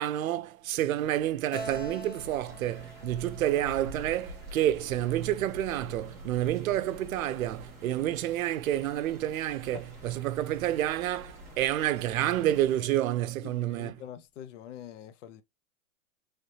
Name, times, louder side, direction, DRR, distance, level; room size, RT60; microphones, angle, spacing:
voice 1, 0.0-9.8 10.0-14.0, right 13 dB, 75° right, 0.6 m, -29 dB
Keyboard (musical), 1.5-5.0, right 1 dB, 40° left, 1.5 m, -44 dB
sound 1, 1.6-12.8, equal, 5° right, 0.6 m, -48 dB
sound 2, 2.5-13.0, left 1 dB, 20° left, 1.5 m, -55 dB
voice 2, 13.4-15.4, left 10 dB, 60° left, 0.6 m, -44 dB
3.2 x 3.2 x 2.7 m
hypercardioid pair, 155°, 42 cm